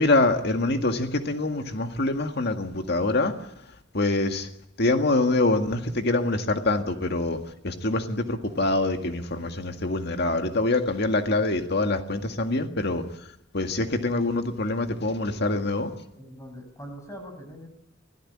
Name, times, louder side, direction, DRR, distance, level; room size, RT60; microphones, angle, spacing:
voice 1, 0.0-3.4 3.9-4.5 4.8-13.0 13.5-15.9, left 2 dB, 55° left, 5 dB, 1.9 m, -25 dB
voice 2, 16.2-17.7, equal, 15° left, 5 dB, 6.6 m, -42 dB
25.0 x 17.0 x 8.7 m, 0.78 s
head